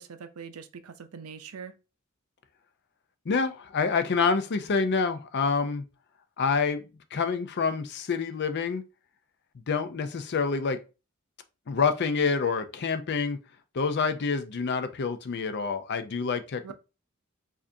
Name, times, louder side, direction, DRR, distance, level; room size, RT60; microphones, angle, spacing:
voice 1, 0.0-1.7 16.6-16.7, right 6 dB, 90° right, 0.5 m, -43 dB
voice 2, 3.3-5.8 6.4-6.8 7.1-8.8 9.7-10.8 11.7-13.4 13.7-16.7, left 5 dB, 50° left, 0.5 m, -27 dB
4.8 x 2.5 x 2.6 m
head